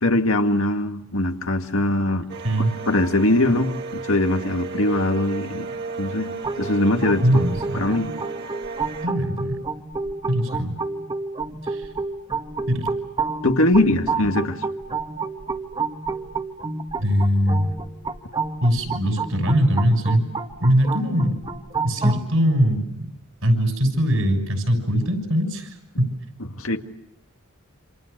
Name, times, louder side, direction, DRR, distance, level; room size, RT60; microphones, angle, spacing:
voice 1, 0.0-2.3 2.9-5.7 6.0-7.2 7.7-8.1 13.4-14.6 26.6-26.8, left 1 dB, 75° left, 5 dB, 2.0 m, -21 dB
sound 1, 2.3-9.1, right 4 dB, 55° right, 1.6 m, -34 dB
sound 2, 6.4-22.2, right 4 dB, 20° right, 1.5 m, -30 dB
voice 2, 7.2-7.8 9.0-9.6 10.3-10.8 11.6-11.9 12.7-12.9 17.0-17.7 18.6-20.2 20.6-21.4 21.8-23.1 23.4-26.2, equal, 75° right, 6 dB, 6.4 m, -21 dB
28.5 x 27.5 x 6.7 m, 0.76 s
head